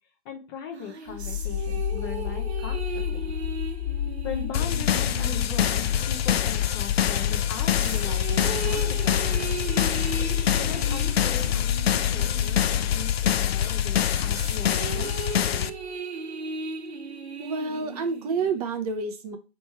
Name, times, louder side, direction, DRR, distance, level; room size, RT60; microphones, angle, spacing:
voice 1, 0.2-3.3 4.2-9.5 10.4-15.1, left 7 dB, 25° left, 3 dB, 0.6 m, -39 dB
sound 1, 0.7-6.7 7.2-13.2 13.6-18.7, right 5 dB, 75° right, 1.0 m, -37 dB
sound 2, 1.1-15.9, left 10 dB, 40° left, 1.3 m, -30 dB
sound 3, 4.5-15.7, left 10 dB, 70° left, 0.5 m, -26 dB
voice 2, 17.4-19.4, right 4 dB, 35° right, 7 dB, 0.7 m, -29 dB
3.2 x 3.1 x 4.4 m, 0.32 s
figure-of-eight pair, 130°, 33 cm